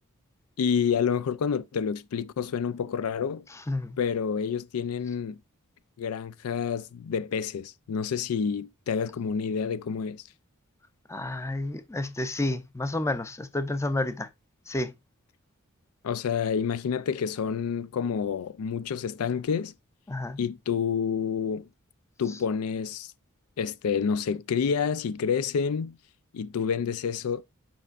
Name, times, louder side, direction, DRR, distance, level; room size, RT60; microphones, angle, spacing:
voice 1, 0.6-3.4 4.0-5.4 6.0-10.2 16.0-19.7 20.4-21.7 22.2-23.1 23.6-26.0 26.3-27.4, left 6 dB, 85° left, 0.4 m, -28 dB
voice 2, 3.7-4.0 11.1-14.3 14.7-14.9 20.1-20.4, left 2 dB, 15° left, 0.5 m, -30 dB
7.6 x 5.3 x 2.5 m
head